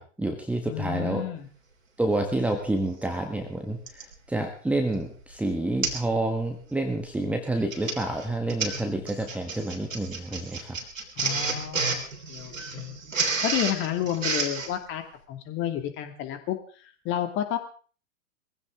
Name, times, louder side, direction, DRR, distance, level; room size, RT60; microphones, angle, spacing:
voice 1, 0.0-1.3 2.0-10.8, right 2 dB, 5° right, 4 dB, 1.4 m, -29 dB
voice 2, 0.7-1.5 11.2-13.0 13.4-17.6, left 11 dB, 30° left, 7 dB, 2.3 m, -31 dB
Printer, 2.7-2.8 3.9-4.1 4.7-4.9 5.2-5.3 5.8-6.1 6.4-6.7 7.5-14.7, right 4 dB, 75° right, 3.5 m, -31 dB
21.5 x 15.5 x 3.7 m, 0.40 s
figure-of-eight pair, 105°, 40 cm